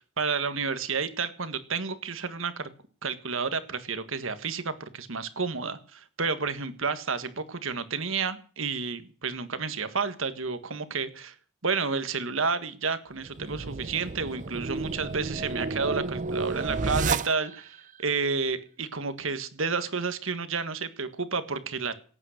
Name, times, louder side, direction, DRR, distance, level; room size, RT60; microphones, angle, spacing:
voice 1, 0.2-2.7 3.0-11.3 11.6-22.0, right 5 dB, 70° right, 11 dB, 1.6 m, -31 dB
sound 1, 13.2-17.8, right 4 dB, 35° right, 0.6 m, -31 dB
17.5 x 9.0 x 6.6 m, 0.42 s
head